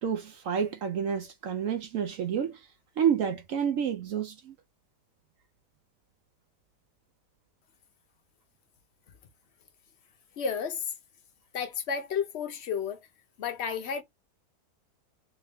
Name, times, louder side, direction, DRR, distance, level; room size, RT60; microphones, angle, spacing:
voice 1, 0.0-2.7 3.0-4.6, right 8 dB, 70° right, 0.8 m, -29 dB
voice 2, 10.4-10.9 11.5-13.0 13.4-14.0, left 7 dB, 60° left, 0.7 m, -32 dB
3.4 x 2.6 x 3.4 m
omnidirectional pair, 1.8 m